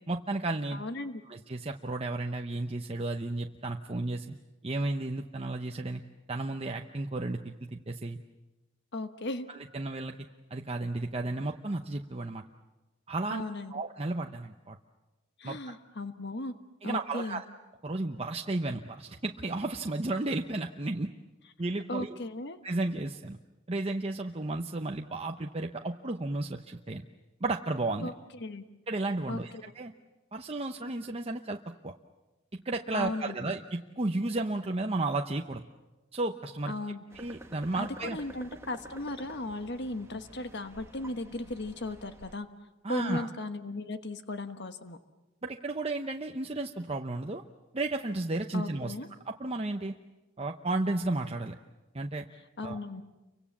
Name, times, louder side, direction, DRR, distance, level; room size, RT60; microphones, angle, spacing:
voice 1, 0.1-0.8 1.3-4.3 4.6-6.0 6.3-8.2 9.7-10.1 10.5-12.4 13.1-13.4 13.7-14.8 15.4-15.6 16.8-17.4 17.8-21.1 21.6-22.2 22.6-23.4 23.7-27.0 27.4-28.1 28.9-29.5 29.8-29.9 30.3-31.6 31.8-31.9 32.6-35.6 36.1-36.7 37.1-38.2 42.8-43.3 45.4-47.4 47.7-48.9 49.3-49.9 50.4-51.6 51.9-52.2 52.6-52.8, right 2 dB, 30° right, 3 dB, 0.8 m, -33 dB
voice 2, 0.7-1.2 8.9-9.5 13.3-13.8 15.4-16.5 16.8-17.4 21.9-22.6 28.0-28.6 29.3-29.6 32.9-33.3 36.7-37.0 37.7-42.5 42.9-45.0 48.5-49.1 52.6-53.0, left 2 dB, 55° left, 9 dB, 1.3 m, -36 dB
sound 1, 37.1-42.3, right 1 dB, 15° right, 1.6 m, -50 dB
29.5 x 24.5 x 7.3 m, 1.1 s
head